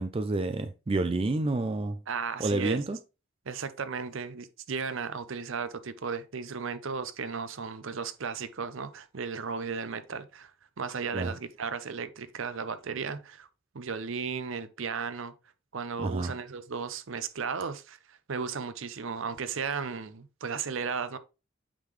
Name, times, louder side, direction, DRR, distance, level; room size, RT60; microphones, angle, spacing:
voice 1, 0.0-2.0 2.4-3.0 11.1-11.3 16.0-16.3, right 2 dB, 25° right, 0.3 m, -29 dB
voice 2, 2.1-2.8 3.5-10.5 10.8-13.5 13.7-15.3 15.7-21.2, right 5 dB, 65° right, 0.6 m, -35 dB
8.6 x 3.8 x 3.1 m
head